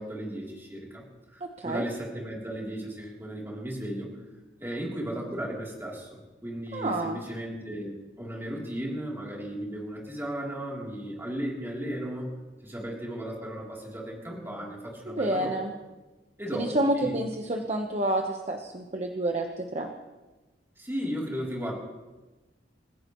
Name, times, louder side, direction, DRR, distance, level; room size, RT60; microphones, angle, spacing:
voice 1, 0.0-4.1 4.6-12.3 12.6-15.5 16.4-17.2 20.8-21.7, equal, 15° right, -3 dB, 3.4 m, -35 dB
voice 2, 6.7-7.2 15.1-15.7 16.5-19.9, right 1 dB, 40° right, 2 dB, 1.2 m, -29 dB
29.0 x 16.0 x 3.2 m, 1.2 s
head